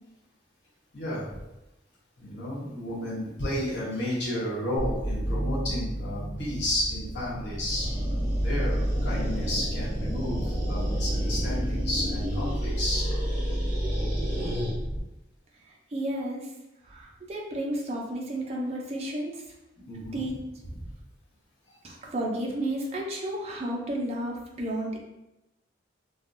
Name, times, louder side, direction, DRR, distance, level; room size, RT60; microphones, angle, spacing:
voice 1, 0.9-1.4 2.2-7.9 8.4-13.1 19.8-20.2 21.7-21.8, left 1 dB, 60° left, -7 dB, 1.0 m, -32 dB
sound 1, 4.8-15.0, equal, 35° left, 0.7 m, -30 dB
sound 2, 7.6-14.7, equal, 50° right, 1.4 m, -35 dB
voice 2, 15.9-16.5 16.9-19.4 20.1-20.4 21.8-25.0, right 1 dB, 35° right, -2 dB, 0.5 m, -32 dB
3.2 x 2.2 x 2.5 m, 0.95 s
head